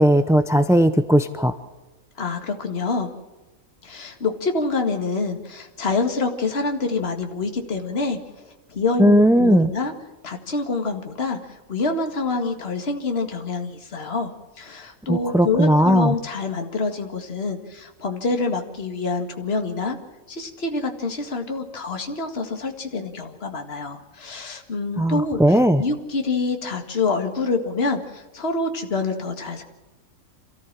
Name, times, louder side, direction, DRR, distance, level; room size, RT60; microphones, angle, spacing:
voice 1, 0.0-1.6 9.0-9.7 15.1-16.1 25.0-25.8, equal, 5° right, 10 dB, 0.4 m, -17 dB
voice 2, 2.2-3.1 3.8-9.9 10.2-20.0 20.3-25.4 25.8-29.6, left 3 dB, 45° left, 4 dB, 2.2 m, -26 dB
28.0 x 14.5 x 7.6 m, 1.2 s
omnidirectional pair, 1.5 m